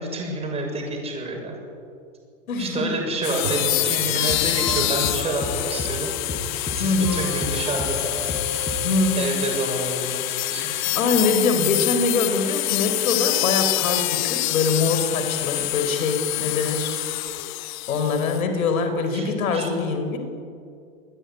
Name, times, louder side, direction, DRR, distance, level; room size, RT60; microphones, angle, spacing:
voice 1, 0.0-1.6 2.6-6.1 6.7-8.3 9.2-10.9 19.1-19.7, right 2 dB, 15° right, 1 dB, 7.1 m, -29 dB
voice 2, 2.5-3.0 4.1-4.3 6.8-7.3 8.8-9.4 10.6-16.9 17.9-20.2, left 4 dB, 80° left, 7 dB, 5.0 m, -24 dB
sound 1, 3.2-18.4, left 19 dB, 35° left, 0.6 m, -26 dB
Drum, 3.4-6.2, right 6 dB, 80° right, 4.4 m, -38 dB
sound 2, 4.1-11.8 12.0-12.4, equal, 15° left, 7.9 m, -34 dB
27.5 x 21.0 x 9.9 m, 2.4 s
hypercardioid pair, 145°, 41 cm